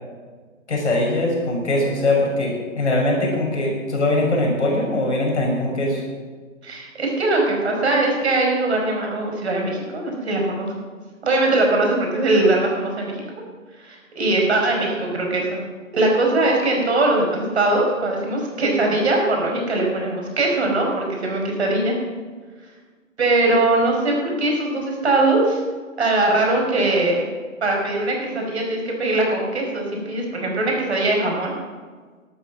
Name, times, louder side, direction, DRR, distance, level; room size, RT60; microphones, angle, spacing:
voice 1, 0.7-6.0, left 2 dB, 55° left, 0 dB, 6.2 m, -21 dB
voice 2, 6.6-10.7 11.3-13.2 13.8-15.6 15.9-22.0 23.2-25.6 26.0-27.2 27.6-31.5, right 2 dB, 50° right, 0 dB, 5.3 m, -21 dB
12.5 x 12.0 x 7.6 m, 1.5 s
figure-of-eight pair, 145°, 40 cm